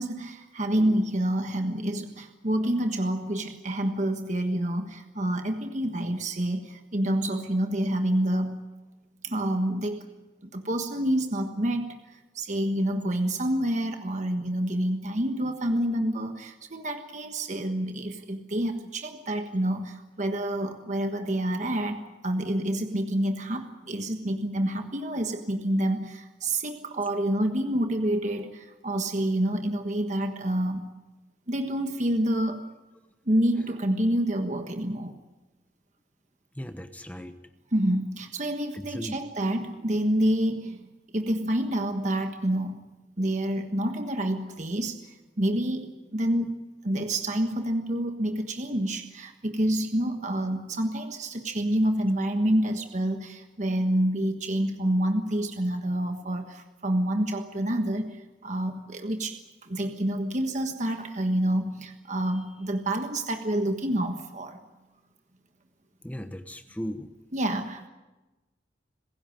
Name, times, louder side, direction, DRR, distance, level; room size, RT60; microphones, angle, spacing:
voice 1, 0.0-8.6 9.2-10.0 10.5-30.9 31.5-32.7 33.2-35.2 37.7-40.9 41.1-42.9 43.2-64.6 67.3-67.9, right 1 dB, 40° right, 6 dB, 1.4 m, -28 dB
voice 2, 36.6-37.3 38.7-39.2 66.0-67.1, equal, 10° left, 9 dB, 1.0 m, -37 dB
27.0 x 16.0 x 9.1 m, 1.1 s
head